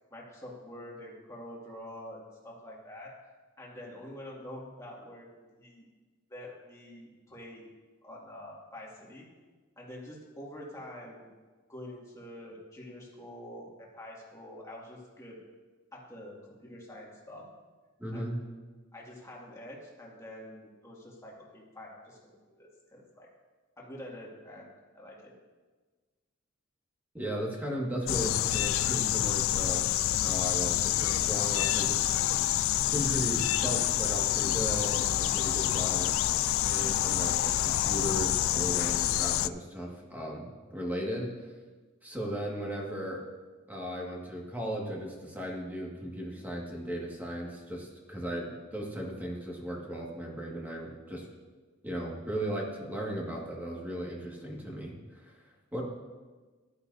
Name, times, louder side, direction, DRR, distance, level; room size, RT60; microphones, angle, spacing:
voice 1, 0.1-3.1 3.6-5.3 5.6-5.9 6.3-7.7 8.0-9.3 9.8-11.3 11.7-15.4 15.9-17.5 18.1-18.3 18.9-23.3 23.8-25.3, left 1 dB, 15° left, -4 dB, 2.2 m, -46 dB
voice 2, 18.0-18.4 27.1-29.8 30.1-32.1 32.9-36.1 36.6-41.3 42.0-43.2 43.7-51.3 51.8-55.4 55.7-55.8, equal, 10° right, -2 dB, 1.9 m, -36 dB
sound 1, 28.1-39.5, left 13 dB, 80° left, 0.3 m, -27 dB
15.5 x 12.0 x 2.7 m, 1.4 s
head